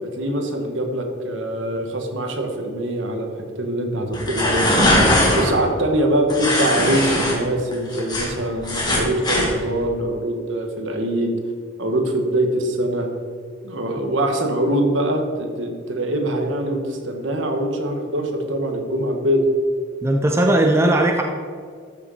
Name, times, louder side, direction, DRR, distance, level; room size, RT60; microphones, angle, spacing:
voice 1, 0.0-4.7 5.3-11.3 11.8-13.1 13.6-19.4, right 1 dB, 65° right, 3 dB, 1.3 m, -23 dB
sound 1, 4.1-5.5 6.3-7.3 7.7-9.5, left 1 dB, 20° left, 2.1 m, -19 dB
voice 2, 20.0-21.2, right 1 dB, 15° right, 2 dB, 0.6 m, -17 dB
13.0 x 6.3 x 4.1 m, 2.1 s
head